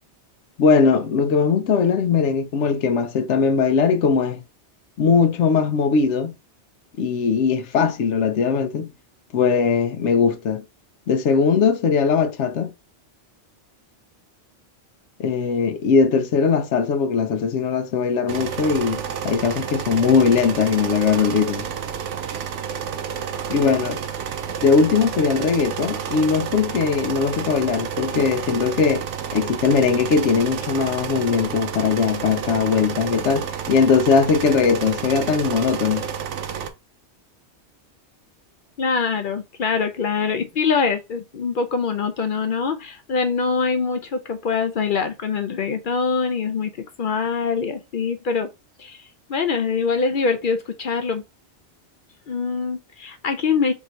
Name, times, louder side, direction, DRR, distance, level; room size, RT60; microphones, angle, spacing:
voice 1, 0.6-4.4 5.0-6.3 7.0-8.9 9.3-10.6 11.1-12.7 15.2-21.7 23.5-24.0 24.6-29.1 29.3-36.1, left 5 dB, 80° left, 1.0 m, -20 dB
sound 1, 18.3-36.7, right 8 dB, 90° right, 1.0 m, -30 dB
voice 2, 38.8-46.7 47.0-48.5 48.8-51.2 52.3-53.7, left 5 dB, 60° left, 0.6 m, -24 dB
3.6 x 2.6 x 4.3 m
omnidirectional pair, 1.2 m